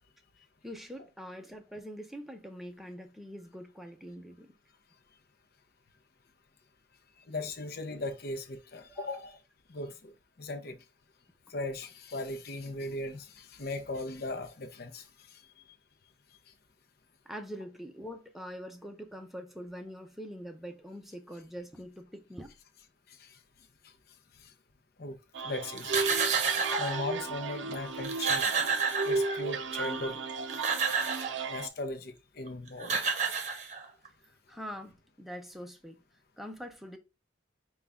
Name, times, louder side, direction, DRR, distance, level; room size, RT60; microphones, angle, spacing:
voice 1, 0.6-4.5 8.9-9.2 17.3-22.5 34.2-36.0 36.4-37.0, equal, ahead, 0.5 m, -44 dB
voice 2, 7.3-9.3 9.7-10.1 10.4-10.8 11.5-15.1 23.2-23.4 24.4-24.5 25.0-25.2 25.4-26.0 26.3-28.5 29.0-30.2 31.5-32.9, left 2 dB, 55° left, 0.7 m, -38 dB
sound 1, 25.3-31.7, right 4 dB, 70° right, 0.5 m, -34 dB
sound 2, 25.8-27.1 27.7-27.8 28.0-29.6 30.3-31.4 32.5-32.6 32.8-34.1, right 5 dB, 35° right, 0.8 m, -30 dB
5.4 x 2.3 x 3.5 m
head